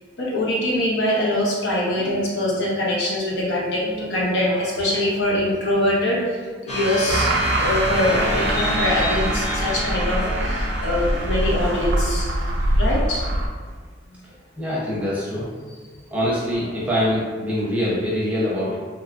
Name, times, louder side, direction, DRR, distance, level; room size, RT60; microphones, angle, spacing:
voice 1, 0.2-12.5 12.7-13.3, left 1 dB, 70° left, -5 dB, 0.7 m, -23 dB
sound 1, 6.7-12.2, left 1 dB, 40° left, 0.6 m, -29 dB
sound 2, 7.1-13.5, right 1 dB, 70° right, 0.5 m, -23 dB
voice 2, 14.6-15.5 16.1-18.8, equal, 10° right, -8 dB, 0.7 m, -24 dB
3.0 x 2.3 x 2.4 m, 1.5 s
head